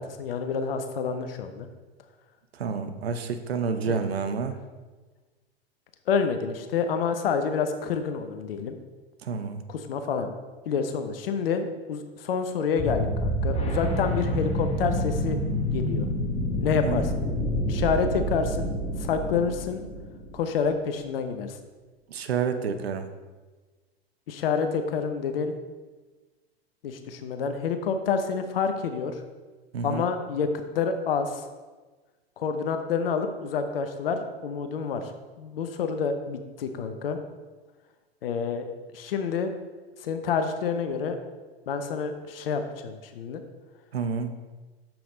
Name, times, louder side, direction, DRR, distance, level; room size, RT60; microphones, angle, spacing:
voice 1, 0.0-1.7 3.8-4.0 6.1-8.8 9.7-10.4 10.7-15.4 15.7-16.1 16.6-17.2 17.7-18.7 19.0-19.8 20.3-21.6 24.3-25.5 26.8-29.2 29.8-30.5 30.7-31.4 32.4-35.1 35.4-37.2 38.2-38.6 38.9-39.5 40.0-41.1 41.7-43.4, left 6 dB, 65° left, 7 dB, 0.8 m, -28 dB
voice 2, 2.5-4.5 9.2-9.6 16.8-17.0 22.1-23.1 29.7-30.0 43.9-44.3, right 5 dB, 75° right, 8 dB, 0.7 m, -29 dB
sound 1, 12.8-20.5, equal, 20° left, 1.3 m, -28 dB
7.1 x 5.9 x 3.8 m, 1.3 s
figure-of-eight pair, 90°, 31 cm